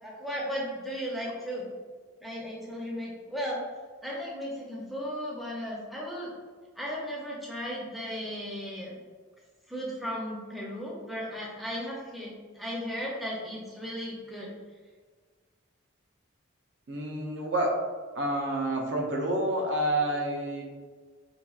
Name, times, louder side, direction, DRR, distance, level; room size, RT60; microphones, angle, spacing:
voice 1, 0.0-1.7 2.2-3.6 4.0-6.3 6.8-8.9 9.7-14.5, equal, ahead, -4 dB, 0.5 m, -35 dB
voice 2, 16.9-17.7 18.1-20.6, right 1 dB, 60° right, 0 dB, 0.5 m, -28 dB
4.1 x 2.2 x 2.3 m, 1.5 s
head